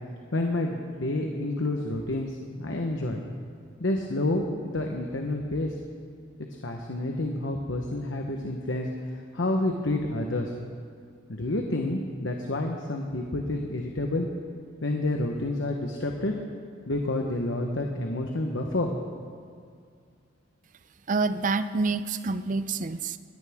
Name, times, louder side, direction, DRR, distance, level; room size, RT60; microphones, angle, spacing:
voice 1, 0.3-3.2 3.8-5.7 6.4-10.5 11.3-14.3 14.8-16.3 16.9-18.9, left 2 dB, 75° left, 2 dB, 1.1 m, -29 dB
voice 2, 21.1-23.2, right 3 dB, 40° right, 12 dB, 0.5 m, -27 dB
21.0 x 14.5 x 3.6 m, 2.2 s
head